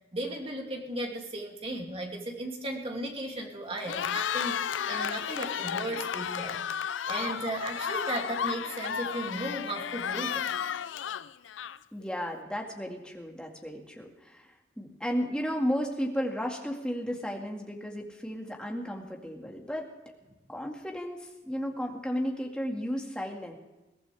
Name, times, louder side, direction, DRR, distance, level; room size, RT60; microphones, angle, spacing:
voice 1, 0.1-6.6 7.1-10.5, right 1 dB, 30° right, 0 dB, 2.7 m, -36 dB
Cheering, 3.7-12.0, left 8 dB, 85° left, 0.5 m, -33 dB
voice 2, 11.9-14.5 14.8-19.9 20.5-23.6, equal, 5° left, 1 dB, 2.0 m, -34 dB
22.5 x 16.5 x 3.5 m, 1.1 s
head